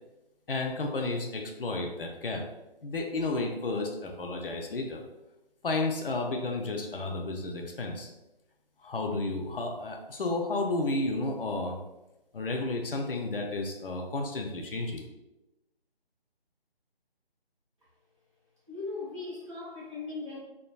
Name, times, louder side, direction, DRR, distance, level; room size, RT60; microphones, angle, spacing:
voice 1, 0.5-2.4 2.8-5.0 5.6-8.1 8.8-11.8 12.3-15.0, left 2 dB, 65° left, 2 dB, 0.5 m, -32 dB
voice 2, 18.7-20.4, left 3 dB, 30° right, -8 dB, 0.9 m, -38 dB
3.3 x 2.1 x 2.2 m, 0.97 s
figure-of-eight pair, 180°, 30 cm